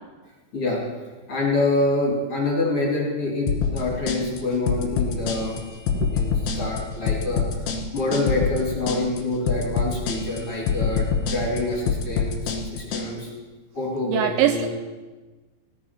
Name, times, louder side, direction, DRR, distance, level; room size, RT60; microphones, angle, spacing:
voice 1, 1.3-5.6 6.0-7.4 7.9-12.4 12.7-13.3 13.7-14.7, left 2 dB, 35° left, -3 dB, 3.1 m, -26 dB
sound 1, 3.5-13.1, left 6 dB, 60° left, 3.1 m, -25 dB
voice 2, 14.1-14.7, right 12 dB, 85° right, 8 dB, 2.7 m, -22 dB
17.0 x 9.5 x 5.9 m, 1.3 s
omnidirectional pair, 5.6 m